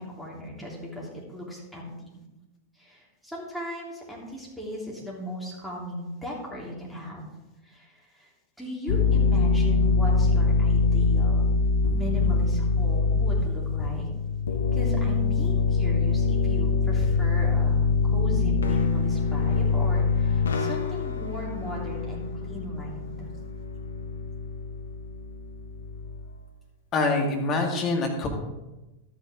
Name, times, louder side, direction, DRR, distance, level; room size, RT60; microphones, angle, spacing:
voice 1, 0.0-2.2 2.8-7.3 7.6-8.3 8.6-11.5 11.9-14.1 14.7-23.3, equal, ahead, -4 dB, 3.1 m, -37 dB
sound 1, 8.9-26.3, left 4 dB, 70° left, 0.9 m, -24 dB
voice 2, 26.9-28.3, left 3 dB, 30° left, 1 dB, 2.0 m, -25 dB
12.0 x 9.0 x 3.6 m, 1.0 s
figure-of-eight pair, 90°, 0 cm